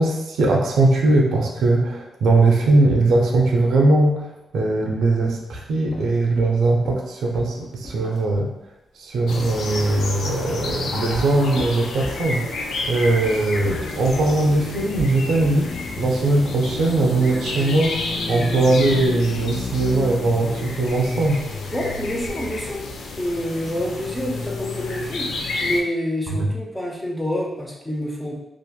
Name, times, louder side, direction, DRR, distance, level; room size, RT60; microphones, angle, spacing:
voice 1, 0.0-8.5 8.9-12.4 12.9-15.7 16.0-18.0 18.3-21.4 26.3-26.5, right 2 dB, 85° right, 0 dB, 0.5 m, -20 dB
sound 1, 5.8-8.5 10.2-12.6 13.5-16.1, equal, 50° left, 0.8 m, -37 dB
sound 2, 9.3-25.8, left 3 dB, 75° left, 0.3 m, -30 dB
voice 2, 21.7-22.9 23.2-25.3 25.6-28.3, left 1 dB, 5° left, -2 dB, 0.5 m, -27 dB
2.7 x 2.5 x 2.2 m, 0.90 s
wide cardioid pair, 140°, 0 cm